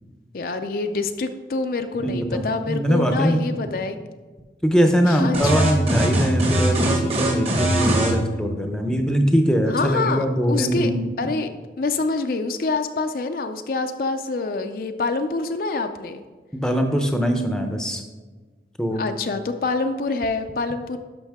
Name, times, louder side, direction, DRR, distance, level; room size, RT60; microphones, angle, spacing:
voice 1, 0.3-4.0 5.0-5.7 9.7-10.9 11.2-11.5 11.8-16.2 18.9-21.0, left 3 dB, 55° left, 7 dB, 0.4 m, -26 dB
voice 2, 2.0-3.5 4.6-11.1 16.5-18.0 18.8-19.0, equal, 5° left, 5 dB, 0.7 m, -22 dB
sound 1, 5.3-8.2, right 1 dB, 35° right, 1.4 m, -21 dB
12.0 x 5.4 x 3.5 m, 1.3 s
head